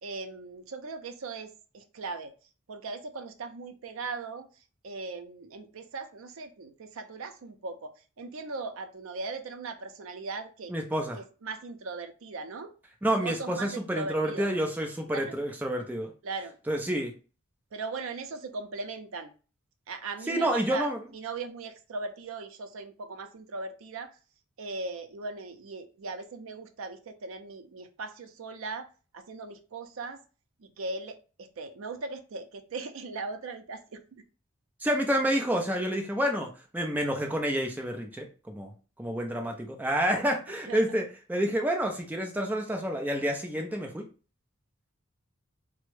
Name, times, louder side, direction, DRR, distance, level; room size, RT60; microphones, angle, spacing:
voice 1, 0.0-2.3 2.7-4.5 4.8-10.7 11.2-12.7 13.1-14.5 15.1-15.3 16.2-16.6 17.7-19.3 19.9-24.1 24.6-28.9 29.1-30.2 30.6-34.2 40.7-40.8, right 3 dB, 70° right, 8 dB, 0.4 m, -39 dB
voice 2, 10.7-11.2 13.0-16.1 16.7-17.1 20.3-21.0 34.8-38.7 39.0-44.1, equal, 10° right, 2 dB, 0.4 m, -29 dB
3.3 x 2.0 x 3.1 m, 0.36 s
head